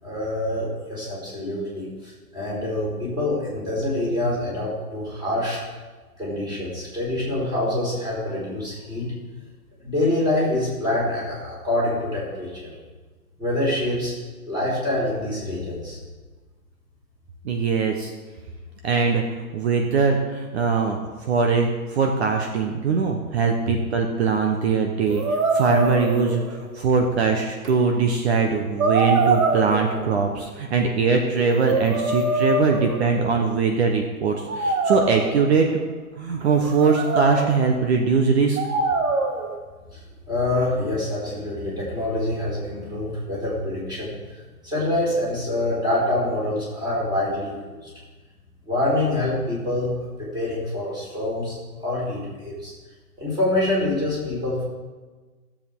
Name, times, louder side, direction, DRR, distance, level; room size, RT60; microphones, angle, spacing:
voice 1, 0.0-5.6 6.2-9.1 9.8-12.7 13.4-14.1 14.4-16.0 39.9-40.0 40.3-47.9 48.7-49.9 50.2-52.7 53.2-54.6, left 1 dB, 10° right, -6 dB, 4.1 m, -26 dB
voice 2, 17.4-18.1 18.8-19.2 19.5-35.8 36.2-38.6, right 5 dB, 45° right, 3 dB, 1.2 m, -21 dB
sound 1, 25.1-26.8 27.6-27.7 28.8-30.3 31.3-33.6 34.5-35.7 36.4-37.7 38.6-39.6, right 3 dB, 65° right, 1.6 m, -24 dB
16.5 x 7.4 x 3.7 m, 1.3 s
hypercardioid pair, 140°, 45 cm